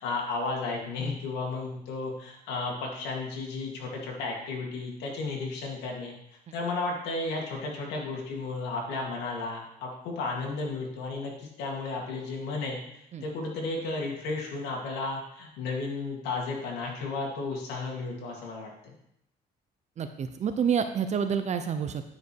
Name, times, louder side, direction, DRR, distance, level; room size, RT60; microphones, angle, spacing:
voice 1, 0.0-6.1 6.5-19.0, left 3 dB, 90° left, -1 dB, 2.2 m, -33 dB
voice 2, 20.0-22.1, right 7 dB, 45° right, 8 dB, 0.7 m, -28 dB
10.5 x 5.3 x 4.7 m, 0.77 s
cardioid pair, 110°, 17 cm